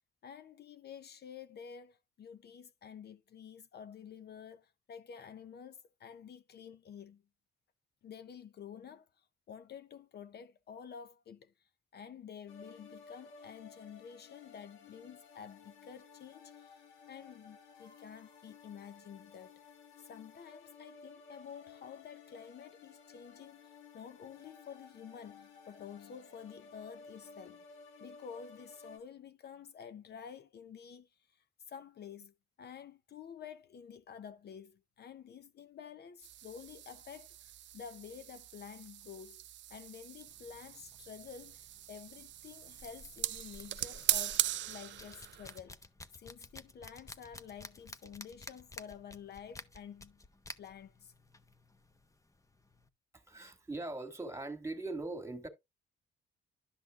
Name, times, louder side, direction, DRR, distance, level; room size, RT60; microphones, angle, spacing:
voice 1, 0.2-7.2 8.0-19.5 20.0-27.6 28.0-39.4 39.7-45.8 46.2-50.2 50.6-51.1, left 7 dB, 55° left, 0.7 m, -50 dB
sound 1, 12.5-29.0, left 5 dB, 90° left, 2.1 m, -56 dB
sound 2, 36.2-45.6, right 13 dB, 65° right, 0.5 m, -39 dB
sound 3, 40.3-52.9, left 2 dB, 15° left, 0.8 m, -54 dB
voice 2, 53.1-55.5, right 2 dB, 15° right, 2.2 m, -41 dB
11.5 x 6.0 x 2.5 m
cardioid pair, 90°, 20 cm